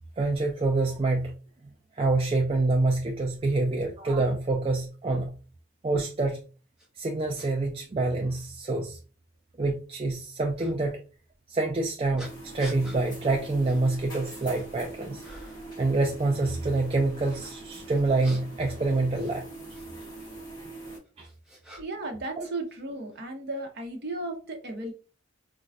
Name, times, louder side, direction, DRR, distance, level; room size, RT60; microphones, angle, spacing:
voice 1, 0.2-1.3 2.0-5.3 5.8-6.4 7.0-9.0 9.6-11.0 11.5-15.2 15.8-19.5 21.2-21.3 22.4-22.5, right 2 dB, 25° right, 1 dB, 0.3 m, -26 dB
sound 1, 6.8-6.9 7.4-7.5 8.4-8.5 10.6-10.7 12.2-13.0 13.6-13.8 14.3-14.8 15.2-15.7 17.9-19.9 20.8-22.1 22.4-23.2, right 1 dB, 5° right, 0.7 m, -48 dB
sound 2, 12.2-21.0, right 2 dB, 20° left, 1.3 m, -43 dB
voice 2, 21.8-24.9, right 2 dB, 50° right, 3 dB, 0.7 m, -35 dB
4.1 x 2.1 x 2.4 m, 0.34 s
head